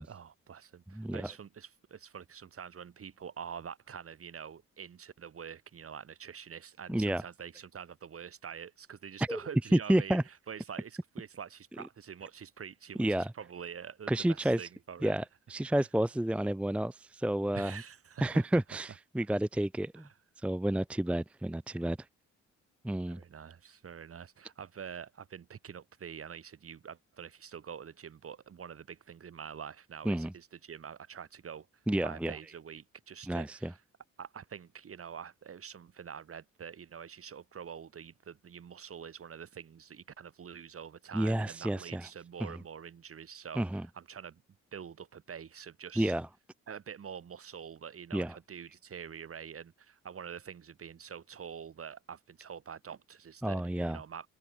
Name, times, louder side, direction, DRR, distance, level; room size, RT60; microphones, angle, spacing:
voice 1, 0.0-15.1 17.5-18.4 20.0-20.1 23.1-31.7 32.0-33.8 34.2-44.4 44.7-46.1 46.7-54.3, right 7 dB, 50° right, 3.9 m, -46 dB
voice 2, 0.9-1.3 6.9-7.2 9.2-9.4 9.9-10.2 13.0-13.3 14.1-14.6 15.0-17.8 18.2-20.0 20.4-22.0 22.8-23.2 30.1-30.3 31.9-32.3 33.3-33.7 41.1-42.1 43.6-43.9 46.0-46.3 48.1-48.3 53.4-54.0, right 1 dB, 5° right, 0.6 m, -30 dB
cardioid pair, 90°, 30 cm